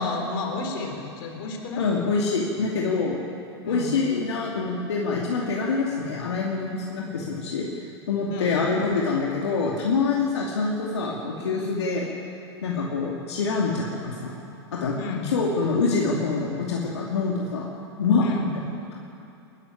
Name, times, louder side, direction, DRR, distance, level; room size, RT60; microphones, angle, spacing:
voice 1, 0.0-1.8 3.6-4.0 8.3-8.6 15.0-15.3 18.2-18.6, left 3 dB, 60° left, 3 dB, 4.0 m, -31 dB
voice 2, 1.8-3.2 3.7-7.7 8.1-12.1 12.6-14.3 14.7-15.0 15.3-17.7 18.0-18.3, left 4 dB, 80° left, -2 dB, 2.5 m, -25 dB
21.5 x 12.5 x 9.8 m, 2.7 s
hypercardioid pair, 100°, 14 cm